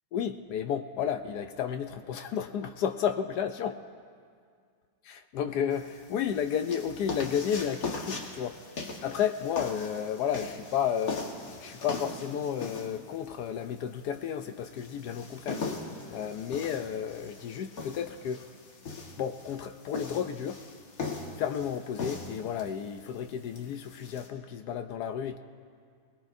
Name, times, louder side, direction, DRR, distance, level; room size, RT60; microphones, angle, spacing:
voice 1, 0.1-3.8 5.1-8.6 9.0-15.6 16.1-18.5 19.2-20.6 21.4-25.4, left 8 dB, 80° left, 8 dB, 0.9 m, -32 dB
sound 1, 5.7-24.3, left 3 dB, 45° left, 1.7 m, -40 dB
22.0 x 20.0 x 2.6 m, 2.1 s
omnidirectional pair, 2.3 m